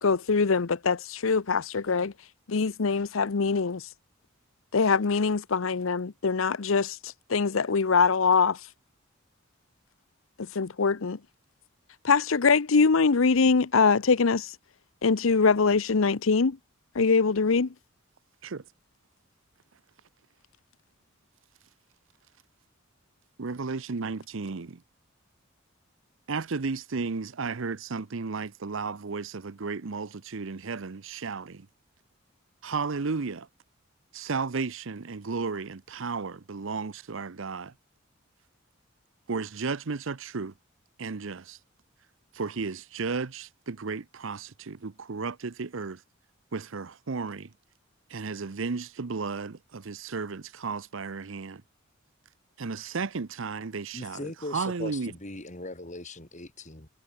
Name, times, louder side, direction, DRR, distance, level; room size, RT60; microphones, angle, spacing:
voice 1, 0.0-2.1 2.5-3.9 4.7-8.7 10.5-11.2 12.0-14.6 15.0-16.6 16.9-17.7, left 4 dB, 75° left, 0.7 m, -23 dB
voice 2, 23.4-24.8 26.3-31.7 32.6-33.5 34.1-37.7 39.3-40.5 41.0-41.6 42.3-46.0 46.5-47.5 48.1-51.6 52.6-55.1, right 4 dB, 70° right, 0.7 m, -33 dB
voice 3, 53.9-56.9, left 2 dB, 35° left, 5.4 m, -39 dB
head